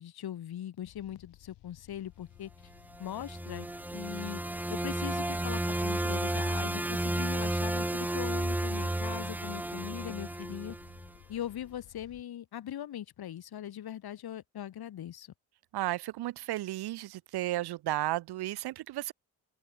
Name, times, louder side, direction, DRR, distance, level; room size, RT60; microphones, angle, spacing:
voice 1, 0.0-2.5 3.0-3.7 3.9-4.4 4.7-10.8 11.3-15.3, left 11 dB, 65° left, 4.4 m, -40 dB
sound 1, 0.8-12.2, left 15 dB, 85° left, 5.3 m, -57 dB
sound 2, 2.9-11.1, right 1 dB, 5° right, 0.5 m, -32 dB
voice 2, 15.7-19.1, right 15 dB, 70° right, 0.8 m, -33 dB
open air
cardioid pair, 95°, 41 cm